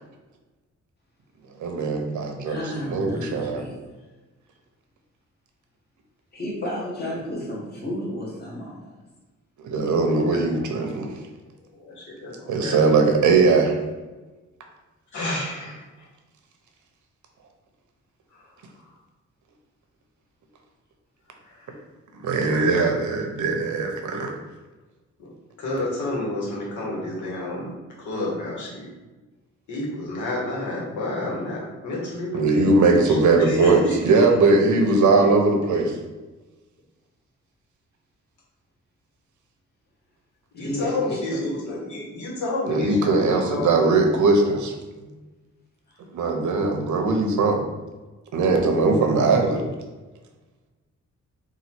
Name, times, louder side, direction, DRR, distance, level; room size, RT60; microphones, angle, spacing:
voice 1, 1.6-3.6 9.6-11.1 12.5-13.7 22.2-24.3 32.3-35.9 42.7-44.7 46.1-47.6 48.3-49.6, right 3 dB, 90° right, 3 dB, 0.8 m, -20 dB
voice 2, 2.5-3.8 6.3-8.9 40.6-41.7 45.0-45.1, left 1 dB, 35° left, -4 dB, 1.2 m, -32 dB
voice 3, 9.9-10.9 11.8-13.0 15.1-16.1 18.3-18.4 21.4-21.8 22.5-22.8 25.2-25.3 25.6-27.7 28.0-28.9 29.7-34.2 35.7-35.8 40.5-43.8, left 2 dB, 90° left, -4 dB, 1.4 m, -30 dB
4.0 x 2.5 x 4.4 m, 1.2 s
wide cardioid pair, 155°, 29 cm